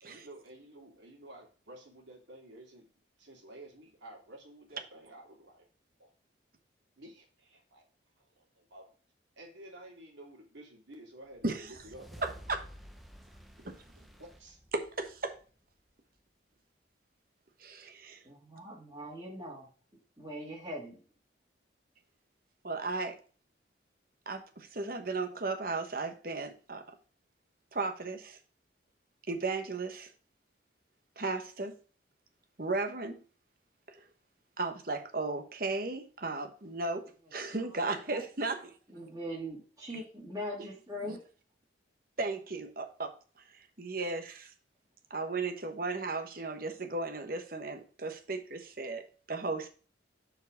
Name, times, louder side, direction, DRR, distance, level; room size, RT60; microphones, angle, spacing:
voice 1, 0.0-2.9 3.2-5.7 6.0-6.1 7.0-7.9 8.2-8.9 9.4-12.6 14.0-14.6, right 1 dB, 75° right, 2.7 m, -52 dB
sound 1, 11.3-15.9, equal, ahead, 0.6 m, -52 dB
voice 2, 12.2-12.6 13.6-13.7 14.7-15.4 17.6-18.2 22.6-23.2 24.3-26.8 27.7-28.4 29.3-30.1 31.2-31.7 32.6-33.2 33.9-34.0 34.6-37.0 37.3-38.7 41.1-41.2 42.2-43.1 43.5-44.5 45.1-49.7, right 3 dB, 50° right, 1.1 m, -35 dB
voice 3, 18.2-19.7 20.2-21.0 37.7-37.8 38.1-38.2 38.9-41.2, equal, 20° right, 2.3 m, -41 dB
6.8 x 4.7 x 5.1 m
head